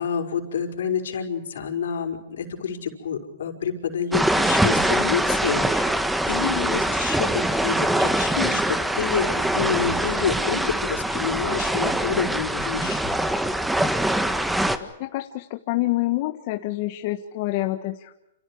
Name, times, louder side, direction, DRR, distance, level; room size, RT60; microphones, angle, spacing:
voice 1, 0.0-6.0 6.3-13.2, left 7 dB, 80° left, 4 dB, 5.6 m, -28 dB
sound 1, 4.1-14.8, right 1 dB, 5° right, 1.6 m, -23 dB
voice 2, 14.8-18.1, left 17 dB, 45° left, 6 dB, 1.6 m, -27 dB
29.0 x 29.0 x 4.9 m, 0.88 s
hypercardioid pair, 145°, 0 cm